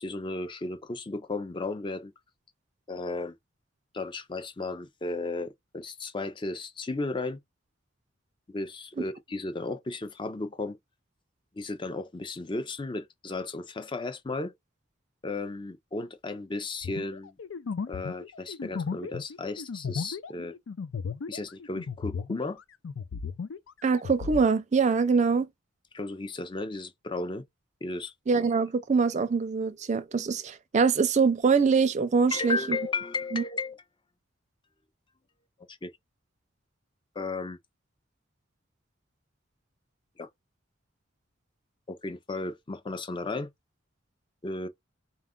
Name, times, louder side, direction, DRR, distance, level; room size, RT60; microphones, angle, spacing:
voice 1, 0.0-2.1 2.9-3.3 3.9-7.4 8.5-10.8 11.5-14.5 15.2-17.3 17.9-20.6 21.3-22.6 25.9-27.4 27.8-28.1 32.3-33.8 35.7-35.9 37.2-37.6 40.2-40.3 41.9-43.5 44.4-44.7, left 3 dB, 25° left, 0.5 m, -34 dB
sound 1, 16.8-22.6 22.8-24.5, left 5 dB, 80° left, 0.5 m, -35 dB
voice 2, 23.8-25.5 28.3-32.8 33.3-33.4, right 5 dB, 35° right, 0.4 m, -24 dB
4.1 x 2.4 x 3.6 m
head